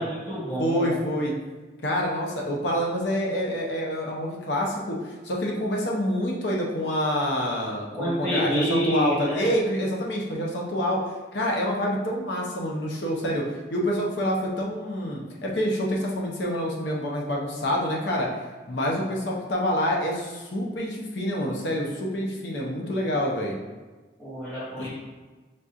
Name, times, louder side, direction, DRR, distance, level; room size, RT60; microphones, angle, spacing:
voice 1, 0.0-1.0 8.0-9.5 24.2-24.9, equal, 10° left, -15 dB, 1.4 m, -28 dB
voice 2, 0.6-1.3 1.8-11.0 11.3-13.4 13.7-18.3 18.7-23.6 24.8-24.9, equal, 70° left, -2 dB, 0.7 m, -27 dB
4.2 x 3.7 x 2.4 m, 1.3 s
head